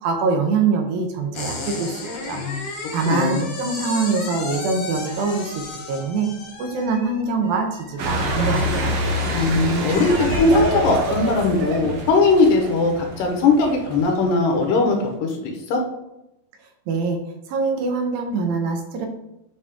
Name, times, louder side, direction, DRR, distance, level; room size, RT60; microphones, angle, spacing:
voice 1, 0.0-6.3 6.6-9.0 16.9-17.2 17.5-19.1, right 4 dB, 80° right, 4 dB, 2.7 m, -24 dB
sound 1, 1.3-11.3, left 3 dB, 60° left, 2.2 m, -35 dB
voice 2, 3.1-3.5 9.3-15.8, left 3 dB, 75° left, 2 dB, 2.6 m, -19 dB
sound 2, 8.0-14.8, equal, 65° right, 1.8 m, -26 dB
7.2 x 4.8 x 3.6 m, 0.88 s
omnidirectional pair, 4.1 m